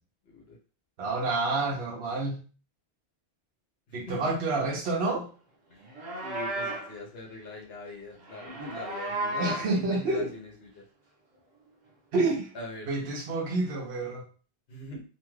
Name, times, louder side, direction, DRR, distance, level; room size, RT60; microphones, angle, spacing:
voice 1, 0.3-0.6 3.9-4.4 6.2-10.8 12.5-12.9 14.7-15.0, left 1 dB, 80° left, -1 dB, 1.1 m, -42 dB
voice 2, 1.0-2.4 3.9-5.3 9.3-10.3 12.1-12.5 12.9-14.3, right 3 dB, 85° right, -1 dB, 1.0 m, -28 dB
Livestock farm animals working animals, 5.8-6.9 8.2-9.7, right 1 dB, 45° right, 0.9 m, -34 dB
2.9 x 2.2 x 3.1 m, 0.37 s
omnidirectional pair, 1.0 m